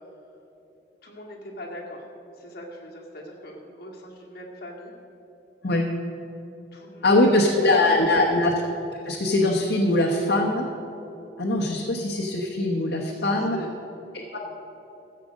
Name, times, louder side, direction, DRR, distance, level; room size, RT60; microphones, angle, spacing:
voice 1, 1.0-2.1 2.3-4.9 6.7-7.7 7.9-8.3 13.1-13.8, equal, 55° left, -2 dB, 2.3 m, -41 dB
voice 2, 7.0-8.5 9.0-10.6 11.4-13.6 14.3-14.4, left 2 dB, 75° left, -2 dB, 1.1 m, -21 dB
14.5 x 7.7 x 6.4 m, 2.9 s
head